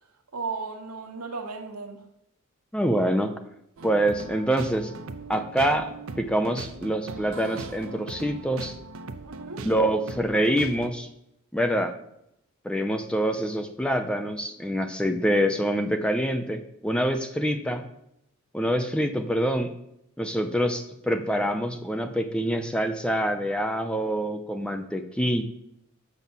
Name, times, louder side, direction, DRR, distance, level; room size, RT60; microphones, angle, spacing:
voice 1, 0.3-2.0 9.2-9.7, right 4 dB, 85° right, 5 dB, 1.4 m, -35 dB
voice 2, 2.7-3.3 3.8-4.9 5.3-8.7 9.6-11.1 11.5-11.9 12.6-17.8 18.5-19.7 20.2-25.4, equal, 5° left, 7 dB, 0.6 m, -26 dB
sound 1, 3.8-10.9, right 3 dB, 65° right, 0.7 m, -39 dB
7.0 x 6.0 x 7.3 m, 0.78 s
head